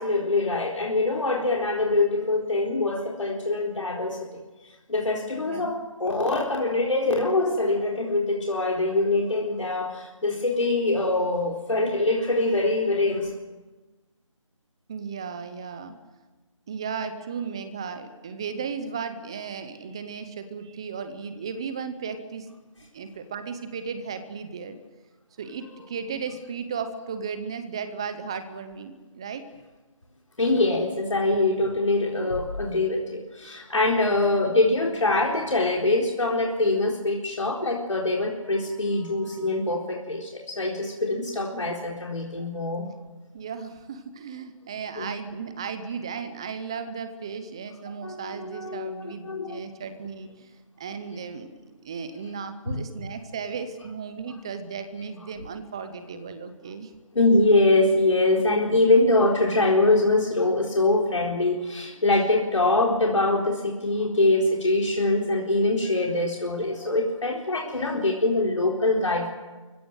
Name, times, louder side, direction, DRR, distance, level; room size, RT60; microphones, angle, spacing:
voice 1, 0.0-4.4 4.9-13.3 30.4-42.9 45.0-45.1 48.0-49.7 52.7-52.8 57.1-69.3, left 2 dB, 70° left, -1 dB, 4.2 m, -24 dB
voice 2, 5.4-5.8 14.9-15.9 16.7-22.5 22.9-24.8 25.4-29.4 43.3-51.5 51.8-56.9, right 6 dB, 10° right, 10 dB, 0.7 m, -35 dB
26.0 x 16.5 x 9.2 m, 1.2 s
figure-of-eight pair, 165°, 17 cm